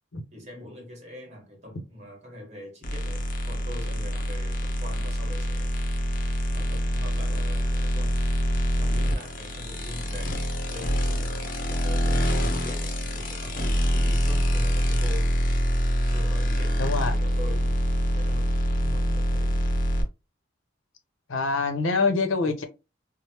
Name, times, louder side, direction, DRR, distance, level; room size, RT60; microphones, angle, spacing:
voice 1, 0.3-5.7 6.5-8.2 8.7-10.4 10.7-13.6 13.9-15.4 16.1-17.8 18.1-19.6, left 1 dB, 35° right, 1.3 m, -42 dB
sound 1, 2.8-20.0, equal, 45° left, 0.6 m, -25 dB
voice 2, 16.8-17.1 21.3-22.6, left 3 dB, 90° left, 0.7 m, -25 dB
3.1 x 2.0 x 2.8 m
head